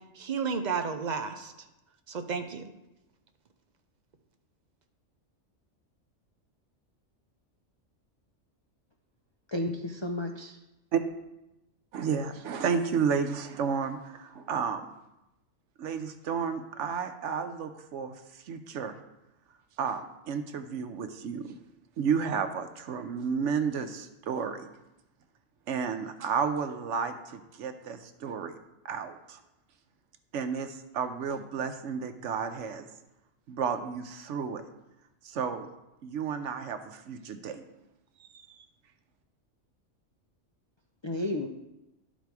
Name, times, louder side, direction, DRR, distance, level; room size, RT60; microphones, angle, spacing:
voice 1, 0.0-1.5 2.1-2.7, right 5 dB, 45° right, 7 dB, 0.6 m, -32 dB
voice 2, 9.5-10.6 41.0-41.5, left 1 dB, 50° left, 4 dB, 0.3 m, -32 dB
voice 3, 11.9-14.9 15.8-19.0 19.8-21.6 22.0-24.7 25.7-28.5 28.8-29.4 30.3-32.9 33.5-34.6 35.2-35.7 36.0-37.6 38.2-38.6, right 6 dB, 75° right, 8 dB, 1.0 m, -32 dB
11.5 x 4.1 x 4.7 m, 0.93 s
omnidirectional pair, 1.3 m